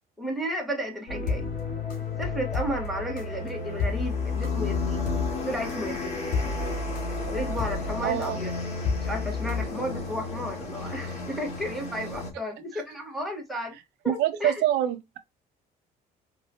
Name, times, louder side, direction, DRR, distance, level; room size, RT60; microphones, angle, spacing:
voice 1, 0.2-1.5 2.2-5.0 5.5-6.2 6.6-6.7 7.3-8.5 9.0-13.8 14.0-14.6, equal, ahead, 1.6 m, -33 dB
sound 1, 1.1-9.7, left 4 dB, 55° left, 2.2 m, -31 dB
sound 2, 3.2-12.3, left 4 dB, 40° left, 2.3 m, -36 dB
voice 2, 8.0-8.4 12.7-12.8 14.1-15.2, right 12 dB, 80° right, 0.8 m, -26 dB
4.7 x 3.0 x 2.9 m
cardioid pair, 110°, 17 cm